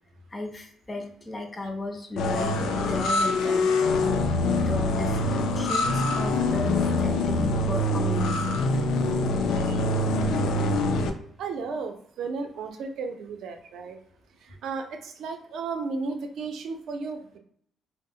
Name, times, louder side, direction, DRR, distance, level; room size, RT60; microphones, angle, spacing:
voice 1, 0.3-3.7 4.7-8.8, left 2 dB, 20° left, 3 dB, 0.4 m, -35 dB
sound 1, 2.2-11.1, left 2 dB, 80° left, 0.3 m, -24 dB
voice 2, 11.4-14.0 14.6-17.4, right 4 dB, 70° right, 5 dB, 0.5 m, -34 dB
2.0 x 2.0 x 3.6 m, 0.62 s
cardioid pair, 130°, 0 cm